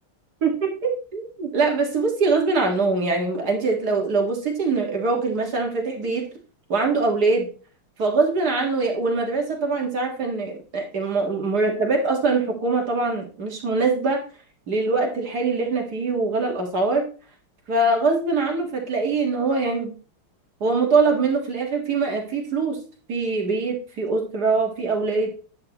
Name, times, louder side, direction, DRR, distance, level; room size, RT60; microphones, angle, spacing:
voice 1, 0.4-6.3 6.7-7.5 8.0-14.2 14.7-17.1 17.7-19.9 20.6-22.8 23.1-25.3, right 3 dB, 50° right, 1 dB, 2.1 m, -23 dB
10.5 x 7.5 x 3.0 m, 0.38 s
omnidirectional pair, 2.2 m